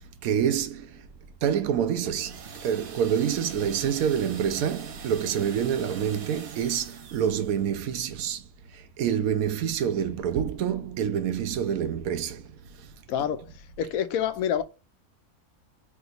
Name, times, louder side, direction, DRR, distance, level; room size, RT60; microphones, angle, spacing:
voice 1, 0.2-0.9 1.4-8.4 9.0-12.4, right 8 dB, 75° right, 1.0 m, -27 dB
sound 1, 2.0-7.7, right 6 dB, 60° right, 0.6 m, -44 dB
voice 2, 13.1-14.6, left 9 dB, 75° left, 1.0 m, -28 dB
3.4 x 2.9 x 3.8 m
omnidirectional pair, 1.5 m